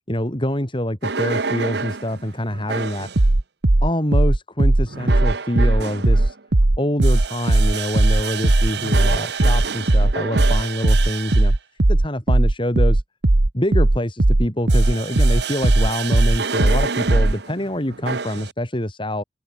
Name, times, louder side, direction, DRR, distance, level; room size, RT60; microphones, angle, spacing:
voice 1, 0.1-3.1 3.8-6.4 6.8-11.6 11.9-13.0 13.5-19.2, left 1 dB, 30° left, 5.6 m, -25 dB
sound 1, 1.0-2.0 2.7-17.4 18.1-18.4, right 2 dB, 65° right, 1.2 m, -18 dB
open air
head